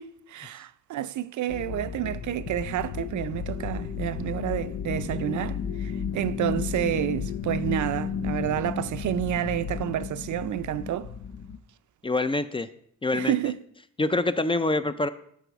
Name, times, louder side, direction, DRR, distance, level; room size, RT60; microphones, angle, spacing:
voice 1, 0.0-11.1 13.1-13.6, right 12 dB, 75° right, 0.5 m, -29 dB
sound 1, 1.5-11.6, left 7 dB, 80° left, 0.7 m, -33 dB
voice 2, 12.0-12.7 13.0-13.4 14.0-15.1, left 2 dB, 20° left, 0.3 m, -25 dB
11.5 x 4.9 x 4.6 m
wide cardioid pair, 145°, 30 cm